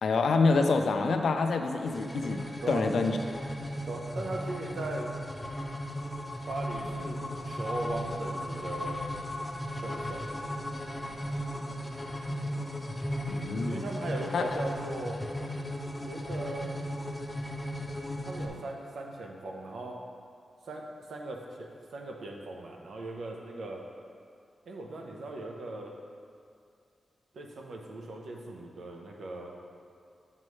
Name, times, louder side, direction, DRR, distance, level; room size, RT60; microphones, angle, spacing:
voice 1, 0.0-2.4 2.7-3.2 13.3-13.9 14.3-14.6, left 4 dB, 75° left, 5 dB, 0.4 m, -26 dB
sound 1, 1.8-18.5, equal, 10° left, 0.6 m, -36 dB
voice 2, 3.9-5.1 6.5-9.0 9.8-10.2 13.6-15.2 16.0-16.8 18.2-20.0 20.7-23.8 24.7-26.0 27.3-29.5, right 2 dB, 85° right, 0 dB, 0.7 m, -39 dB
7.5 x 5.2 x 3.2 m, 2.4 s
wide cardioid pair, 100°, 0 cm